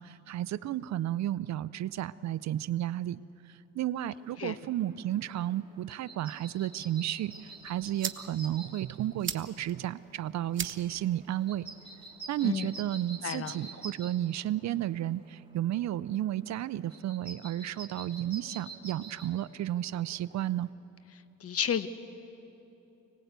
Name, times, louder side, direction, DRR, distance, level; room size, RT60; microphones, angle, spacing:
voice 1, 0.0-11.7 12.3-20.7, right 12 dB, 65° right, 18 dB, 0.6 m, -33 dB
sound 1, 4.1-20.7, right 3 dB, 15° right, 3.0 m, -49 dB
sound 2, 7.4-13.4, right 7 dB, 40° right, 1.1 m, -43 dB
voice 2, 13.2-13.5 21.4-21.9, left 8 dB, 50° left, 12 dB, 1.1 m, -31 dB
25.5 x 19.0 x 8.1 m, 2.9 s
cardioid pair, 90°, 30 cm